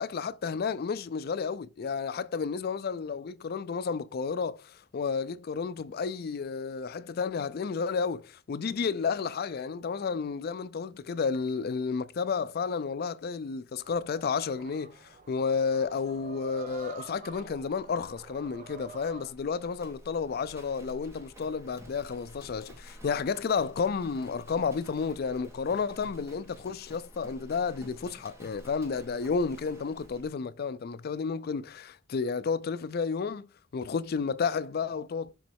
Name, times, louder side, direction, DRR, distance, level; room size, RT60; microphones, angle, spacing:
voice 1, 0.0-33.5 33.7-35.3, left 5 dB, 55° left, 0.4 m, -31 dB
sound 1, 13.8-19.3, right 4 dB, 40° right, 0.7 m, -48 dB
Livestock farm animals working animals, 17.2-30.3, equal, 15° right, 1.6 m, -51 dB
7.1 x 3.1 x 4.5 m
head